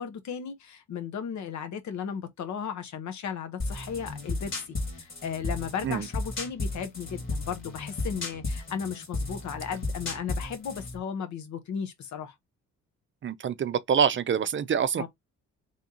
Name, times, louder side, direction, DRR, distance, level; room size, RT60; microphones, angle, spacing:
voice 1, 0.0-12.3 15.0-15.1, left 7 dB, 70° left, 1.1 m, -35 dB
sound 1, 3.6-11.0, left 2 dB, 40° left, 1.9 m, -34 dB
voice 2, 13.2-15.1, right 7 dB, 40° right, 0.5 m, -26 dB
3.5 x 2.8 x 3.7 m
cardioid pair, 90°, 30 cm